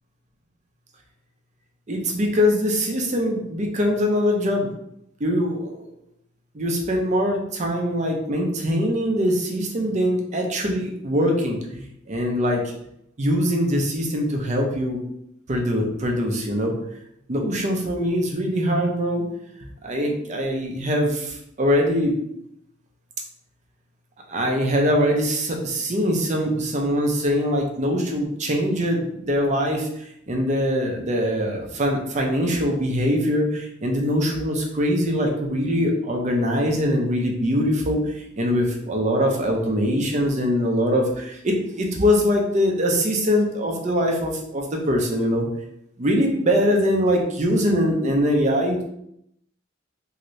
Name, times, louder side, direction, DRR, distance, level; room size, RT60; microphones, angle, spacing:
voice 1, 1.9-4.7 5.2-5.7 6.5-12.6 13.2-15.0 15.5-16.7 17.3-19.2 19.8-22.1 24.3-29.9 30.3-38.0 38.4-45.5 46.0-48.8, equal, 35° right, 1 dB, 0.5 m, -22 dB
2.7 x 2.6 x 3.1 m, 0.76 s
head